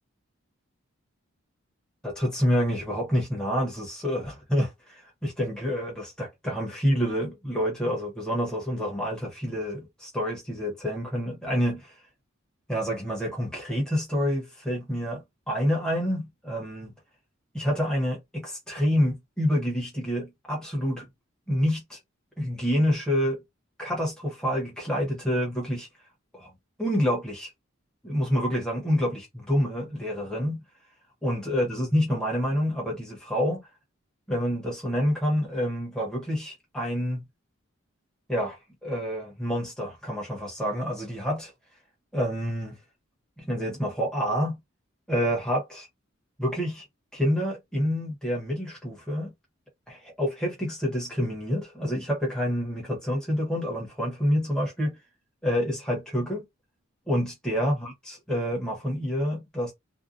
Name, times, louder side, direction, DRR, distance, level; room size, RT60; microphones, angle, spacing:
voice 1, 2.0-11.9 12.7-16.9 17.5-21.0 21.5-22.0 22.4-23.4 23.8-25.9 26.3-26.5 26.8-27.5 28.0-30.6 31.2-33.6 34.3-37.2 38.3-41.5 42.1-42.8 43.4-44.6 45.1-45.9 46.4-46.8 47.1-49.3 49.9-55.0 55.4-56.4 57.1-59.7, equal, 5° left, 0.9 m, -28 dB
2.7 x 2.2 x 2.4 m
head